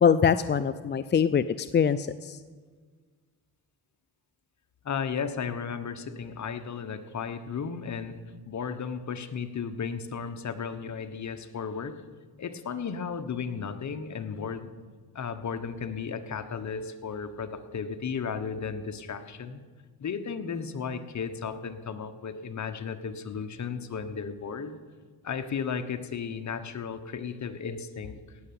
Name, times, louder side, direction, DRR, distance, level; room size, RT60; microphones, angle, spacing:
voice 1, 0.0-2.4, left 7 dB, 30° left, 13 dB, 0.4 m, -23 dB
voice 2, 4.8-8.2 8.5-12.0 12.4-14.7 15.1-19.6 20.0-24.8 25.2-28.4, left 6 dB, 45° left, 9 dB, 1.2 m, -34 dB
17.5 x 6.8 x 8.7 m, 1.5 s
cardioid pair, 95°, 38 cm